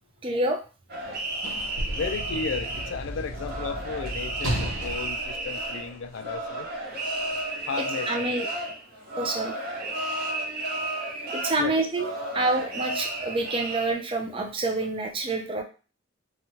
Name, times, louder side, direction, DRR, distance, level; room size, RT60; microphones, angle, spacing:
voice 1, 0.2-0.6 7.8-8.5 9.2-9.5 11.3-15.6, right 2 dB, 25° right, 0.4 m, -27 dB
sound 1, 0.9-13.9, right 2 dB, 50° right, 0.9 m, -33 dB
Sliding door / Slam, 1.0-6.4 7.3-7.4, right 1 dB, 90° right, 0.7 m, -34 dB
voice 2, 1.9-6.7 7.7-8.3 11.6-11.8, left 5 dB, 60° left, 0.3 m, -34 dB
2.9 x 2.3 x 2.7 m
head